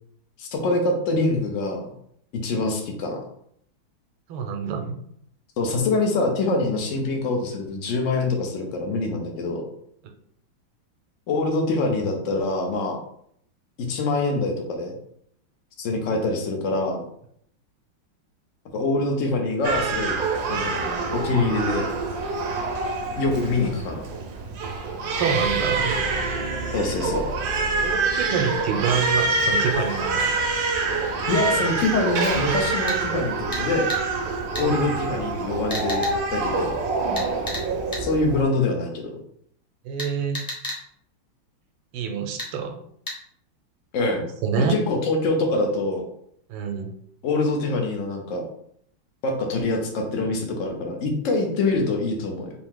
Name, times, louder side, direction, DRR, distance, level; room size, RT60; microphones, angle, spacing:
voice 1, 0.4-1.9 2.4-3.3 5.6-9.6 11.3-13.0 13.9-14.9 15.8-17.1 18.7-20.2 20.5-21.9 23.2-24.1 26.7-27.2 31.3-33.9 34.6-36.7 38.0-39.1 43.9-44.3 44.6-46.0 47.2-48.4 49.2-52.5, left 2 dB, 75° left, 2 dB, 0.7 m, -24 dB
voice 2, 4.3-4.9 25.2-25.9 27.8-30.3 34.5-35.0 39.8-40.4 41.9-42.8 44.4-44.8 46.5-46.9, right 6 dB, 80° right, 5 dB, 1.5 m, -27 dB
Crying sobbing, 19.6-38.4, right 3 dB, 65° right, 0.9 m, -26 dB
sound 1, 25.4-29.3, equal, 15° right, 0.3 m, -35 dB
sound 2, 32.9-33.0 33.5-33.6 33.9-34.0 34.5-34.7 35.7-36.1 37.1-37.7 37.9-38.0 40.0-40.8 42.4-42.5 43.1-43.2, left 1 dB, 15° left, 0.7 m, -32 dB
4.5 x 2.8 x 3.6 m, 0.68 s
omnidirectional pair, 2.3 m